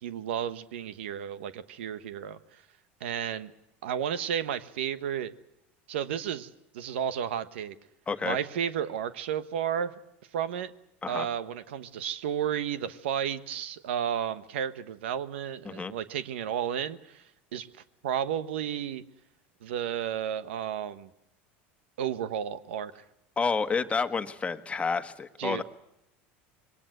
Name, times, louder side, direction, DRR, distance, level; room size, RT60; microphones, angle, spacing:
voice 1, 0.0-2.6 3.0-3.5 3.8-5.3 5.9-7.8 8.2-9.9 10.3-10.7 11.1-17.2 17.5-17.7 18.0-19.0 19.6-21.1 22.0-23.0 25.4-25.6, right 9 dB, 85° right, 14 dB, 1.2 m, -32 dB
voice 2, 8.1-8.4 11.0-11.3 15.6-15.9 23.4-25.6, left 5 dB, 20° left, 10 dB, 1.4 m, -29 dB
22.5 x 19.0 x 8.0 m, 0.83 s
supercardioid pair, 105°, 6 cm